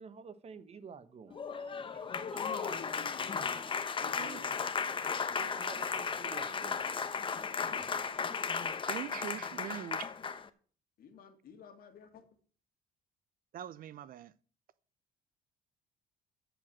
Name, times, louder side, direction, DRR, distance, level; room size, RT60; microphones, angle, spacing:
voice 1, 0.0-2.7 5.4-6.9, right 6 dB, 40° right, 1.0 m, -51 dB
Applause, 1.3-10.5, left 5 dB, 30° left, 1.0 m, -35 dB
voice 2, 2.3-4.7 11.0-12.2, left 6 dB, 60° left, 2.3 m, -49 dB
voice 3, 4.0-4.4 8.9-10.1 13.5-14.3, right 11 dB, 55° right, 0.7 m, -42 dB
13.5 x 5.1 x 7.4 m
cardioid pair, 110°, 17 cm